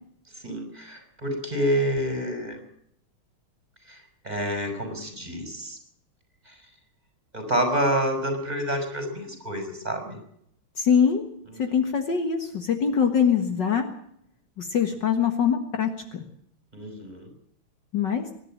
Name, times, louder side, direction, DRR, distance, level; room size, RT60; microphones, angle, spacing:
voice 1, 0.4-2.6 3.9-5.8 6.5-6.6 7.3-10.2 16.7-17.3, equal, 20° right, 5 dB, 5.4 m, -28 dB
voice 2, 10.8-11.2 11.6-13.9 14.6-16.2 17.9-18.3, left 7 dB, 55° left, 6 dB, 2.1 m, -23 dB
25.5 x 11.5 x 8.9 m, 0.72 s
omnidirectional pair, 2.4 m